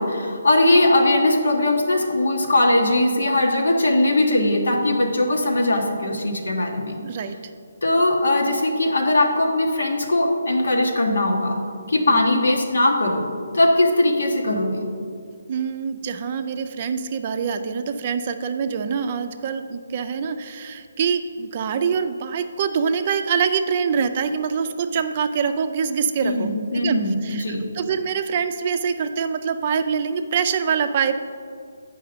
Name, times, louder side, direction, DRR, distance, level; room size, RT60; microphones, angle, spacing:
voice 1, 0.0-7.0 7.8-11.6 11.9-13.3 13.5-14.8 26.2-27.7, left 1 dB, 80° left, 2 dB, 1.3 m, -20 dB
voice 2, 7.0-7.3 12.1-12.4 15.5-31.2, right 6 dB, 35° right, 8 dB, 0.4 m, -25 dB
7.7 x 5.4 x 5.1 m, 2.2 s
hypercardioid pair, 165°, 0 cm